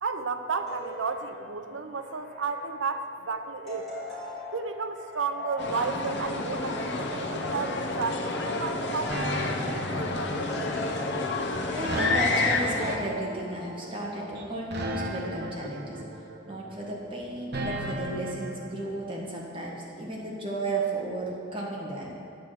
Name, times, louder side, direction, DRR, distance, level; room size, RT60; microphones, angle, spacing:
voice 1, 0.0-3.9 4.5-10.7, right 4 dB, 80° right, 8 dB, 0.6 m, -33 dB
sound 1, 0.7-14.4, left 1 dB, ahead, 2.6 m, -43 dB
sound 2, 5.6-13.0, left 3 dB, 60° left, 0.8 m, -30 dB
sound 3, 9.1-18.7, right 1 dB, 55° right, 1.0 m, -34 dB
voice 2, 11.4-16.0 16.5-22.1, right 2 dB, 25° right, -3 dB, 1.5 m, -34 dB
9.2 x 4.8 x 7.7 m, 2.3 s
head